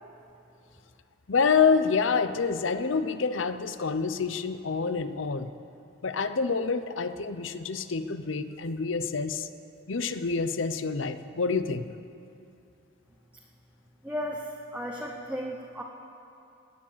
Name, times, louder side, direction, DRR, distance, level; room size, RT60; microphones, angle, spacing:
voice 1, 1.3-5.5 6.0-9.5 9.9-11.9, left 5 dB, 70° left, 11 dB, 0.7 m, -27 dB
voice 2, 14.0-15.8, equal, 10° right, -1 dB, 0.9 m, -35 dB
19.0 x 9.8 x 7.5 m, 2.7 s
head